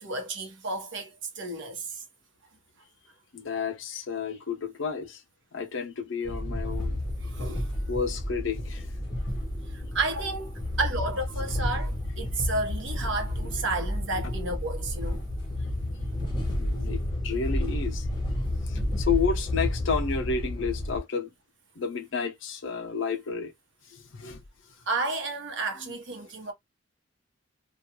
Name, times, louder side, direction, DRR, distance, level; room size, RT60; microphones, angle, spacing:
voice 1, 0.0-2.0 7.2-7.7 9.7-15.2 24.9-26.5, right 3 dB, 70° right, 0.9 m, -32 dB
voice 2, 3.3-5.2 5.5-7.0 7.9-8.9 16.6-18.1 18.6-21.3 21.8-23.5 23.9-24.4 25.9-26.0, left 5 dB, 70° left, 0.6 m, -31 dB
sound 1, 6.2-21.0, left 1 dB, 20° left, 0.8 m, -31 dB
2.4 x 2.2 x 2.9 m
head